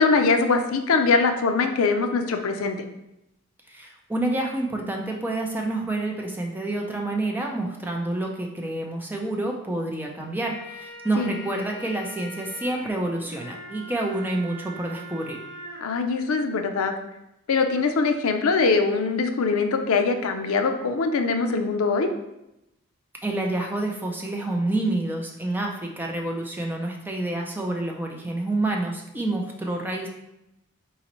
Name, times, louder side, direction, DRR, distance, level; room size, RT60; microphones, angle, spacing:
voice 1, 0.0-2.8 11.2-11.4 15.8-16.9 17.5-22.1, left 4 dB, 80° left, 6 dB, 0.5 m, -22 dB
voice 2, 3.7-15.4 23.2-30.1, right 2 dB, 10° right, 1 dB, 0.4 m, -28 dB
sound 1, 10.2-15.8, equal, 40° left, 0.9 m, -42 dB
4.1 x 3.9 x 3.0 m, 0.88 s
head